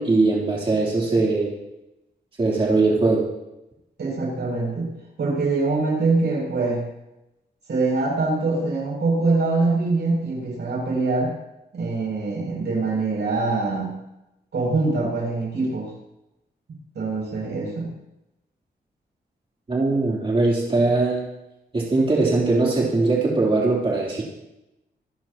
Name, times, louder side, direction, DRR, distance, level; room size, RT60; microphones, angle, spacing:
voice 1, 0.0-1.5 2.4-3.3 19.7-21.3 21.7-24.2, right 3 dB, 30° right, -4 dB, 3.5 m, -20 dB
voice 2, 4.0-4.9 5.2-6.9 7.7-11.3 11.7-13.9 14.5-15.9 17.0-17.9, right 3 dB, 80° right, -1 dB, 7.2 m, -23 dB
27.0 x 14.0 x 3.0 m, 0.92 s
wide cardioid pair, 165°, 18 cm